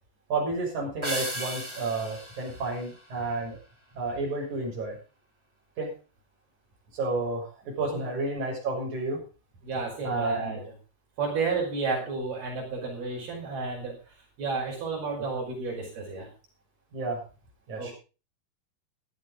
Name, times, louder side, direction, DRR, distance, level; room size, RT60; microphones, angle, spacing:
voice 1, 0.3-3.6 3.9-5.0 5.8-5.9 6.9-9.2 10.0-10.6 16.9-17.2 17.7-17.9, right 3 dB, 50° right, -2 dB, 8.0 m, -31 dB
sound 1, 1.0-3.7, right 1 dB, 10° right, 3.1 m, -36 dB
voice 2, 9.6-10.6 11.2-16.3 17.8-17.9, right 4 dB, 85° right, -1 dB, 7.2 m, -32 dB
16.0 x 12.5 x 3.9 m, 0.33 s
omnidirectional pair, 4.3 m